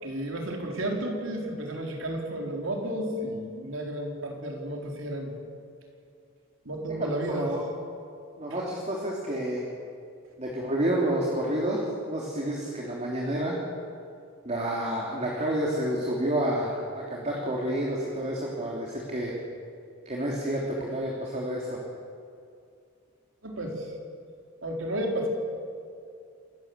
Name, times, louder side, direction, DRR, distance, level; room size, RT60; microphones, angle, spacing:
voice 1, 0.0-5.3 6.6-7.5 23.4-23.8 24.6-25.3, right 1 dB, 70° right, 1 dB, 4.5 m, -32 dB
voice 2, 7.0-7.6 8.4-9.7 10.4-13.6 14.4-19.3 20.0-21.8, right 1 dB, 35° right, -3 dB, 3.2 m, -29 dB
27.5 x 15.0 x 8.3 m, 2.4 s
head